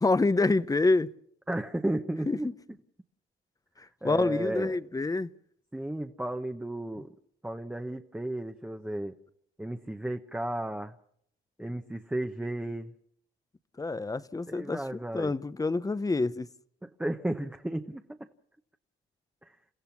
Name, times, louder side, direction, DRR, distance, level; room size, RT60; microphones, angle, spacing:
voice 1, 0.0-1.1 2.3-2.5 3.8-5.3 7.0-7.1 13.8-16.5, left 3 dB, 20° left, 0.8 m, -27 dB
voice 2, 1.5-2.5 4.0-4.8 5.7-7.1 7.4-9.1 9.6-10.9 11.6-12.9 14.5-15.3 16.8-18.3 19.4-19.6, right 1 dB, 5° right, 1.0 m, -34 dB
30.0 x 15.0 x 5.9 m
cardioid pair, 90°, 20 cm